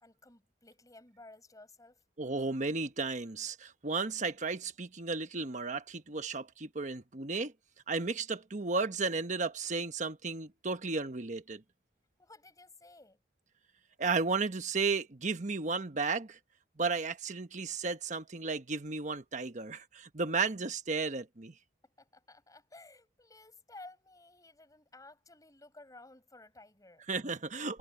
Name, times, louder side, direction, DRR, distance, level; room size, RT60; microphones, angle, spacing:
voice 1, 0.0-2.0 12.2-13.2 21.8-27.1, left 2 dB, 20° left, 6.7 m, -55 dB
voice 2, 2.2-7.5 7.9-11.6 14.0-16.4 16.8-21.5 27.1-27.8, right 4 dB, 45° right, 1.2 m, -34 dB
head